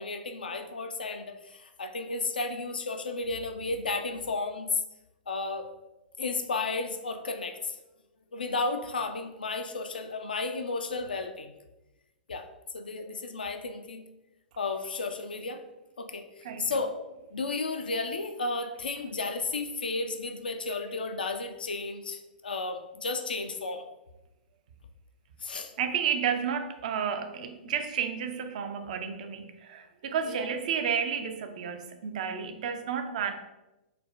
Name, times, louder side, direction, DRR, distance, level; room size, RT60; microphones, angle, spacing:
voice 1, 0.0-4.8 5.3-5.7 6.2-7.8 8.3-11.5 12.3-12.5 12.7-14.1 14.6-15.6 16.0-16.9 17.3-23.8 25.4-25.7 30.3-30.5, left 3 dB, 70° left, 7 dB, 0.3 m, -33 dB
voice 2, 16.4-16.7 25.8-33.3, right 7 dB, 50° right, 7 dB, 0.4 m, -31 dB
4.0 x 2.1 x 3.1 m, 1.0 s
figure-of-eight pair, 105°, 5 cm